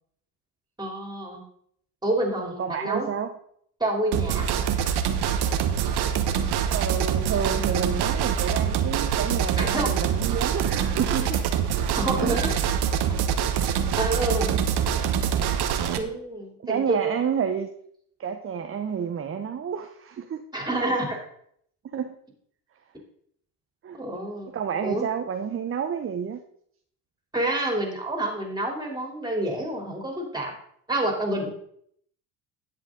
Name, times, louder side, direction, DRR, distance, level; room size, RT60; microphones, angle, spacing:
voice 1, 0.8-1.4 2.0-3.1 3.8-4.7 9.6-9.9 11.9-12.5 14.0-14.5 16.0-17.2 20.5-21.2 23.9-24.5 24.8-25.0 27.3-30.5 30.9-31.5, right 1 dB, 10° right, 1 dB, 3.4 m, -28 dB
voice 2, 2.4-3.3 6.7-11.5 12.3-12.4 14.5-14.6 16.6-17.7 18.2-20.5 21.9-22.1 23.8-24.0 24.5-26.4, right 7 dB, 30° right, 7 dB, 0.8 m, -29 dB
sound 1, 4.1-16.0, right 8 dB, 55° right, 1.2 m, -25 dB
10.5 x 8.0 x 3.8 m, 0.67 s
supercardioid pair, 80°, 47 cm